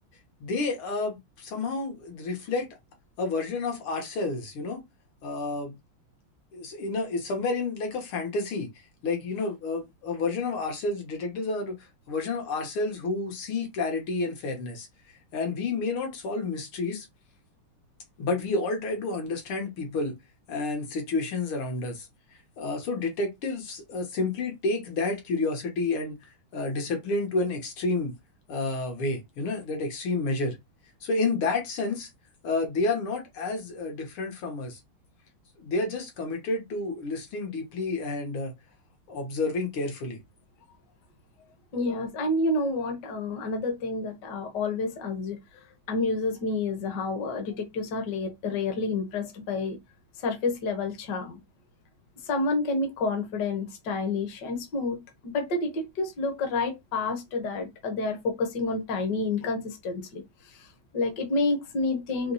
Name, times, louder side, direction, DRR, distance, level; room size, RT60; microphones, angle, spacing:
voice 1, 0.4-2.7 3.2-4.8 5.2-5.7 6.5-8.7 9.0-11.8 12.1-14.9 15.3-17.1 18.2-20.2 20.5-22.1 22.6-26.2 26.5-28.1 28.5-30.6 31.0-32.1 32.4-34.8 35.6-38.5 39.1-40.2, left 3 dB, 85° left, 2.2 m, -30 dB
voice 2, 41.7-45.4 45.9-49.8 50.2-51.4 52.2-62.3, left 3 dB, 55° left, 1.6 m, -29 dB
4.3 x 3.0 x 4.0 m
omnidirectional pair, 2.3 m